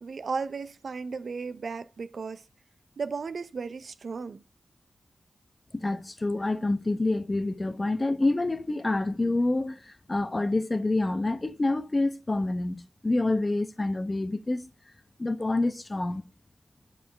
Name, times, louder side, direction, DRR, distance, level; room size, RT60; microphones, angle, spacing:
voice 1, 0.0-2.4 3.0-4.4, right 4 dB, 75° right, 0.6 m, -35 dB
voice 2, 5.7-14.7 15.2-16.2, left 2 dB, 35° left, 0.9 m, -27 dB
9.0 x 4.8 x 3.5 m
cardioid pair, 40°, 0 cm